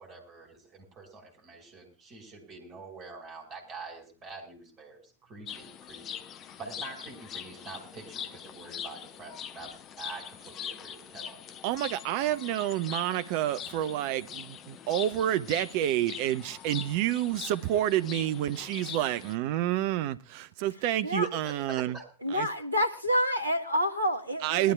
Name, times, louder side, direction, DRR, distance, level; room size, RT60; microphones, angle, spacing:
voice 1, 0.0-6.2 6.6-11.6 21.2-22.1, right 3 dB, 30° right, 4.2 m, -46 dB
sound 1, 5.5-19.4, left 9 dB, 30° left, 0.8 m, -43 dB
voice 2, 11.6-21.9 22.3-22.5 24.4-24.7, right 12 dB, 45° right, 0.6 m, -29 dB
voice 3, 22.2-24.7, equal, 85° right, 1.1 m, -28 dB
21.0 x 12.5 x 2.3 m
figure-of-eight pair, 90°, 0 cm